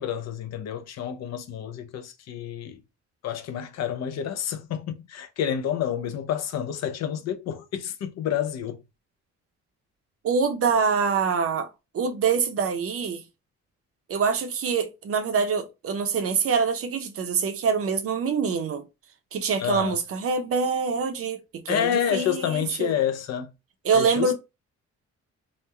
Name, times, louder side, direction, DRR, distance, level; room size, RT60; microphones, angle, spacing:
voice 1, 0.0-2.8 3.2-8.8 19.6-20.0 21.7-23.5 23.9-24.3, left 9 dB, 60° left, 0.5 m, -29 dB
voice 2, 10.2-11.7 11.9-13.2 14.1-18.8 19.3-21.4 21.7-22.9 23.9-24.3, right 5 dB, 50° right, 0.6 m, -25 dB
3.0 x 2.1 x 2.2 m
cardioid pair, 90°, 30 cm